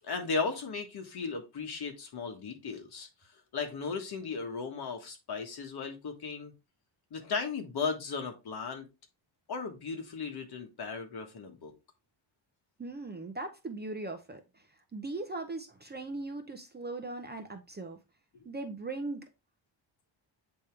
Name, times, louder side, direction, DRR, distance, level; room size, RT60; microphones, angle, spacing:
voice 1, 0.0-3.1 3.5-6.5 7.1-8.9 9.5-11.7 18.3-18.4, left 4 dB, 55° left, 1.6 m, -36 dB
voice 2, 12.8-14.6 14.9-18.0 18.4-19.2, right 2 dB, 20° right, 0.6 m, -39 dB
8.2 x 3.6 x 3.2 m
wide cardioid pair, 170°, 46 cm